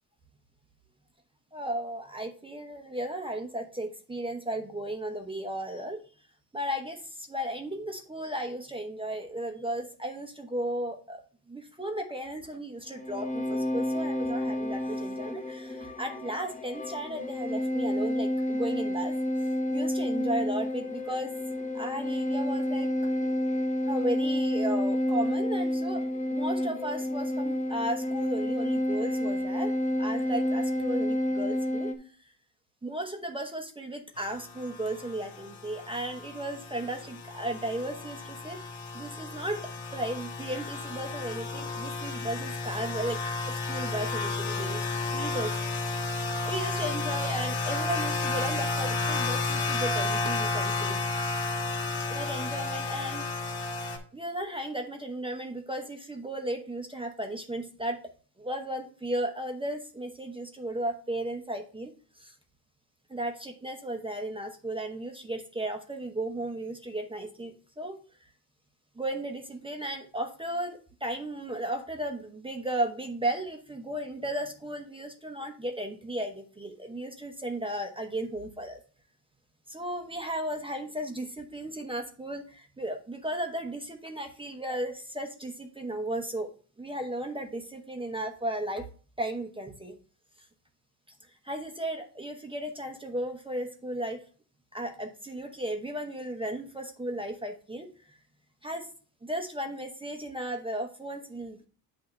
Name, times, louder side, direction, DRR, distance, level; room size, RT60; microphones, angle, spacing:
voice 1, 1.5-6.0 6.5-11.2 11.5-19.2 19.7-21.3 21.7-22.9 23.9-26.0 26.3-29.7 30.0-31.9 32.8-38.6 38.9-39.6 39.9-43.2 43.5-45.5 45.8-46.0 46.4-51.0 52.1-53.6 54.1-58.0 58.4-62.3 63.1-68.0 69.0-78.8 79.7-86.5 86.8-88.8 89.2-89.9 91.4-94.2 94.7-97.9 98.6-98.9 99.2-101.7, right 1 dB, 10° right, 4 dB, 0.9 m, -35 dB
sound 1, 12.9-31.9, left 1 dB, 15° left, 0.8 m, -30 dB
sound 2, 34.2-54.0, left 3 dB, 70° left, 2.2 m, -32 dB
8.4 x 2.8 x 5.3 m, 0.40 s
cardioid pair, 110°, 49 cm